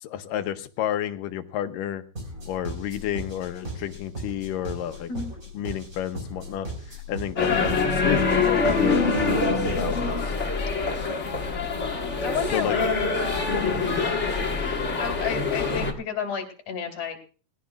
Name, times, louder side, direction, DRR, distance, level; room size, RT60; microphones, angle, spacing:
voice 1, 0.0-2.0 2.5-5.1 5.5-6.7 7.1-9.5 9.7-10.4 10.9-11.2 12.5-12.8 13.6-13.8, left 11 dB, 80° left, 9 dB, 2.5 m, -31 dB
sound 1, 2.2-10.2, right 1 dB, 25° right, 3.9 m, -38 dB
sound 2, 7.4-15.9, left 4 dB, 40° left, 1.0 m, -24 dB
voice 2, 11.0-11.3 12.2-12.9 15.0-17.2, left 6 dB, 60° left, 4 dB, 4.0 m, -31 dB
20.5 x 15.5 x 2.4 m, 0.38 s
omnidirectional pair, 3.9 m